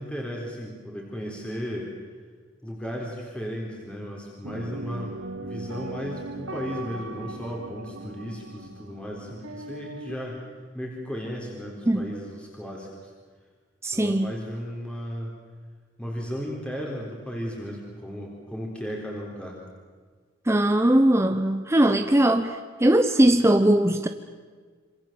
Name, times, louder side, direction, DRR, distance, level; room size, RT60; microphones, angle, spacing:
voice 1, 0.0-1.9 2.6-10.4 10.7-13.1 13.9-15.3 16.0-19.6, equal, 5° left, -2 dB, 3.9 m, -35 dB
sound 1, 4.4-10.2, right 2 dB, 80° right, 2.1 m, -38 dB
voice 2, 13.8-14.3 20.5-24.1, right 1 dB, 15° right, 7 dB, 0.9 m, -20 dB
27.0 x 25.5 x 7.6 m, 1.6 s
head